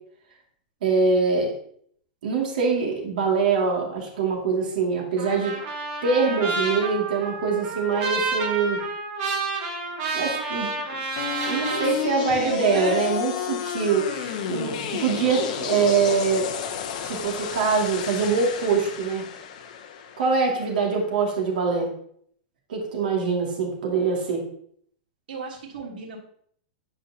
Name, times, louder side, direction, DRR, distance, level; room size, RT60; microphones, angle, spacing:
voice 1, 0.8-1.5 2.2-5.6 6.0-8.8 10.1-11.0 11.5-16.5 17.0-19.2 20.2-21.9 22.7-24.4, right 5 dB, 65° right, -1 dB, 2.4 m, -24 dB
Trumpet, 5.2-11.9, right 3 dB, 35° right, 1.6 m, -30 dB
sound 1, 11.2-21.2, left 8 dB, 50° left, 0.9 m, -31 dB
voice 2, 11.7-13.0 25.3-26.2, right 4 dB, 85° right, -5 dB, 3.1 m, -34 dB
10.5 x 5.0 x 2.9 m, 0.64 s
supercardioid pair, 165°, 5 cm